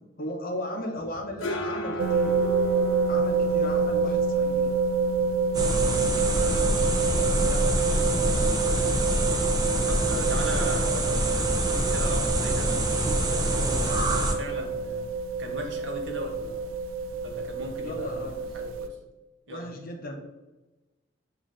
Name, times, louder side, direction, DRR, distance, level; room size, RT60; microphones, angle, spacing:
voice 1, 0.2-2.4 3.0-4.7 5.9-8.6 15.7-15.8 17.8-18.4 19.5-20.2, left 1 dB, 50° left, 2 dB, 0.7 m, -37 dB
sound 1, 1.0-18.5, left 2 dB, 85° left, 0.6 m, -42 dB
sound 2, 2.0-18.9, right 4 dB, 90° right, 0.3 m, -28 dB
sound 3, 5.5-14.3, right 1 dB, 20° right, 0.5 m, -26 dB
voice 2, 9.8-14.1 14.4-15.1 15.4-16.7 17.2-19.0 19.5-19.7, right 1 dB, 65° right, 2 dB, 0.8 m, -37 dB
7.2 x 2.5 x 2.5 m, 1.1 s
head